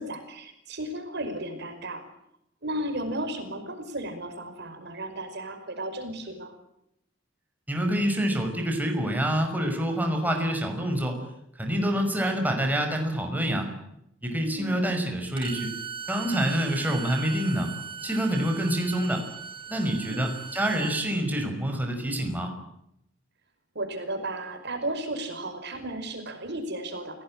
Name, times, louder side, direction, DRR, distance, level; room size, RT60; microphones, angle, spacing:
voice 1, 0.0-2.0 2.6-6.5 14.6-15.0 20.1-20.3 23.8-27.2, right 1 dB, 60° right, 7 dB, 5.4 m, -34 dB
voice 2, 7.7-11.2 11.6-13.7 14.2-15.7 16.1-17.7 18.0-19.3 19.7-22.5, right 1 dB, 10° right, 3 dB, 5.8 m, -27 dB
Bowed string instrument, 15.4-21.1, right 6 dB, 25° right, 2.7 m, -38 dB
29.0 x 18.5 x 8.9 m, 0.79 s
head